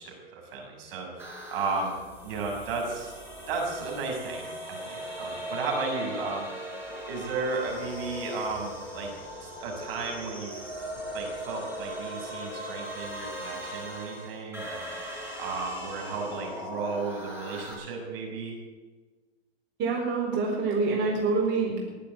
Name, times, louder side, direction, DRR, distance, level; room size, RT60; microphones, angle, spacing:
voice 1, 0.0-1.9 2.2-3.1 3.5-6.5 6.9-9.1 9.4-14.8 15.4-18.5, right 4 dB, 65° right, 1 dB, 6.2 m, -34 dB
sound 1, 1.2-17.7, equal, 5° right, 6.1 m, -39 dB
voice 2, 19.8-21.8, right 4 dB, 35° right, -1 dB, 4.4 m, -26 dB
20.0 x 8.5 x 8.1 m, 1.3 s
hypercardioid pair, 115°, 32 cm